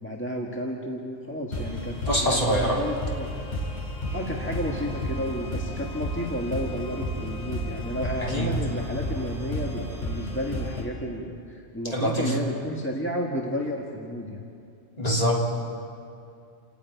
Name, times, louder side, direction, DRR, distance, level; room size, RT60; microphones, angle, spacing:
voice 1, 0.0-3.3 4.1-14.4, equal, 10° left, -2 dB, 1.6 m, -32 dB
sound 1, 1.5-10.8, left 1 dB, 60° left, 4.3 m, -32 dB
voice 2, 2.1-2.8 8.2-8.6 11.9-12.4 15.0-15.4, equal, 30° left, -3 dB, 3.2 m, -24 dB
28.5 x 10.0 x 9.3 m, 2.5 s
omnidirectional pair, 1.3 m